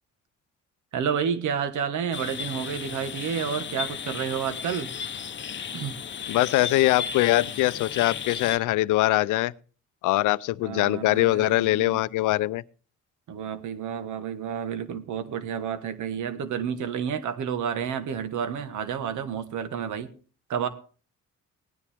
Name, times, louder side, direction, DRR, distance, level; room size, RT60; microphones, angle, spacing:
voice 1, 0.9-4.9 5.7-6.0 10.6-12.0 13.3-20.1 20.5-20.7, right 7 dB, 75° right, 1.4 m, -30 dB
sound 1, 2.1-8.6, left 7 dB, 40° left, 0.8 m, -35 dB
voice 2, 6.3-9.5 10.0-12.6, left 18 dB, 85° left, 0.5 m, -22 dB
17.5 x 10.0 x 3.5 m
cardioid pair, 90°, 30 cm